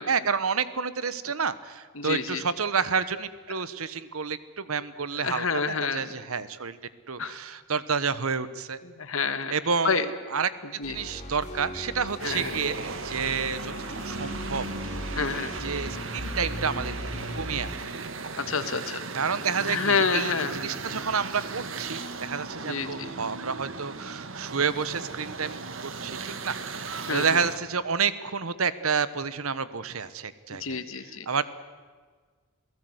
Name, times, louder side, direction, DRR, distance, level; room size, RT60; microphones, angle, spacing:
voice 1, 0.1-6.8 7.1-8.8 9.5-10.5 10.9-13.7 14.0-14.6 15.3-17.0 17.3-17.9 19.1-30.8 31.3-31.4, right 5 dB, 80° right, 15 dB, 1.1 m, -29 dB
voice 2, 2.0-2.4 5.1-6.0 7.2-7.4 8.8-9.5 9.8-10.1 10.6-11.0 12.2-12.5 15.2-15.5 18.4-19.0 19.7-20.6 22.7-23.1 27.1-27.4 30.5-31.3, left 5 dB, 70° left, 10 dB, 1.7 m, -28 dB
sound 1, 10.8-17.7, equal, 35° left, 3.8 m, -38 dB
sound 2, 12.2-27.6, right 4 dB, 60° right, 1.5 m, -37 dB
27.5 x 18.0 x 8.0 m, 1.5 s
head